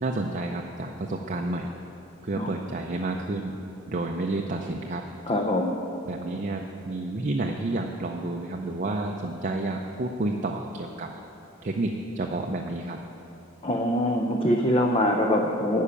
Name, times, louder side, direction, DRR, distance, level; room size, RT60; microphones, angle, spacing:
voice 1, 0.0-1.7 2.2-3.6 3.9-5.0 6.1-11.1 11.6-13.0, right 2 dB, 35° right, 1 dB, 0.5 m, -30 dB
voice 2, 5.3-5.8 13.6-15.8, left 1 dB, 25° left, 2 dB, 0.5 m, -24 dB
10.0 x 5.6 x 8.4 m, 2.9 s
head